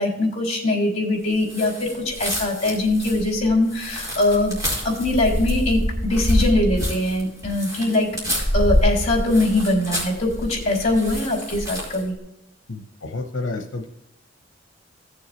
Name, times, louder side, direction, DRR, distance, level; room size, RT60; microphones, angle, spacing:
voice 1, 0.0-4.6 4.8-8.2 8.5-12.1, left 2 dB, 35° left, -2 dB, 3.5 m, -22 dB
sound 1, 1.4-12.1, equal, 20° right, 4.5 m, -26 dB
voice 2, 12.7-13.9, left 3 dB, 75° left, 3 dB, 0.8 m, -30 dB
17.0 x 7.1 x 3.1 m, 0.89 s
head